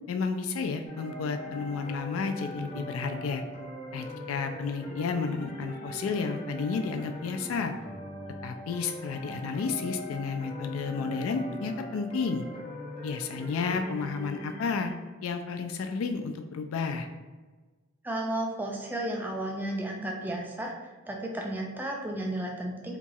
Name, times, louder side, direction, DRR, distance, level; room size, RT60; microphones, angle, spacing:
voice 1, 0.1-3.4 3.9-7.7 8.4-12.5 13.0-14.9 15.2-17.1, left 5 dB, 90° left, 6 dB, 0.3 m, -32 dB
sound 1, 0.9-14.9, equal, 30° left, 0.6 m, -41 dB
voice 2, 18.0-23.0, right 1 dB, 10° right, 0 dB, 0.3 m, -33 dB
2.9 x 2.3 x 2.6 m, 1.3 s
head